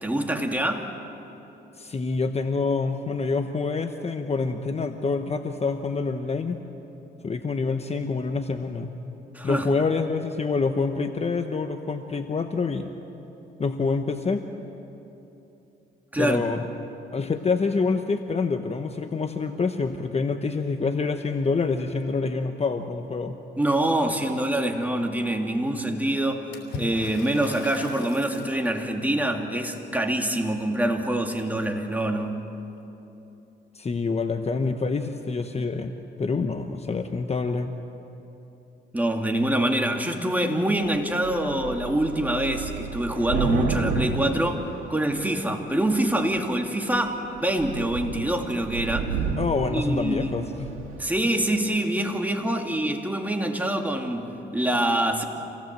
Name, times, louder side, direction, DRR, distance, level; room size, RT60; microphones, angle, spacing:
voice 1, 0.0-0.9 9.3-9.7 16.1-16.4 23.6-26.5 26.8-32.4 38.9-49.2 49.7-50.4 51.0-55.2, right 1 dB, 10° right, 3 dB, 2.4 m, -25 dB
voice 2, 1.8-6.6 7.2-8.9 9.4-12.9 13.6-14.4 16.2-16.6 17.1-23.4 33.7-35.9 36.2-37.7 49.4-50.7, left 4 dB, 30° left, 7 dB, 1.1 m, -26 dB
Water / Splash splatter, 26.5-28.6, left 4 dB, 85° left, 3.2 m, -38 dB
Thunder / Rain, 40.8-41.0 41.2-45.4 46.1-46.5 46.9-47.1 47.4-51.1, right 5 dB, 90° right, 2.4 m, -31 dB
27.0 x 18.0 x 7.6 m, 3.0 s
cardioid pair, 90°, 20 cm